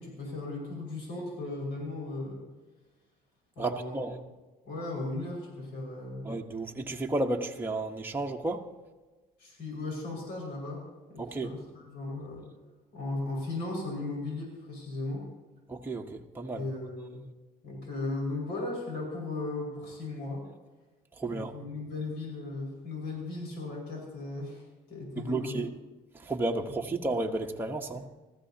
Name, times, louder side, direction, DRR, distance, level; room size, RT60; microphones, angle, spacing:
voice 1, 0.0-2.4 3.6-4.0 4.7-6.2 9.4-10.8 11.1-12.5 12.9-15.3 16.5-17.2 17.6-20.5 21.3-25.6, left 2 dB, 85° left, 5.3 m, -37 dB
voice 2, 3.6-4.2 6.2-8.6 11.2-11.5 15.7-16.7 21.2-21.5 25.2-25.7 26.1-28.0, right 2 dB, 10° right, 1.0 m, -32 dB
20.0 x 14.0 x 2.8 m
cardioid pair, 110°, 17 cm